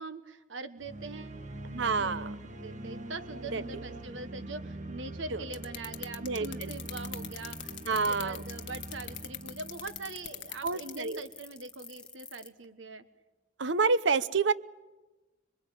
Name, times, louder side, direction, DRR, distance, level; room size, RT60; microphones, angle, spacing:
voice 1, 0.0-1.4 1.8-2.2 2.5-7.8 8.1-13.0, right 3 dB, 90° right, 11 dB, 1.3 m, -43 dB
sound 1, 0.8-10.8, right 1 dB, 40° right, 1.9 m, -43 dB
voice 2, 1.7-2.3 3.5-3.8 5.3-5.4 6.2-6.7 7.9-8.4 10.6-11.2 13.6-14.5, right 4 dB, 75° right, 16 dB, 0.8 m, -28 dB
sound 2, 5.5-11.0, left 13 dB, 75° left, 1.5 m, -40 dB
sound 3, 6.6-12.5, left 3 dB, 5° left, 1.5 m, -47 dB
27.0 x 23.0 x 8.9 m, 1.1 s
head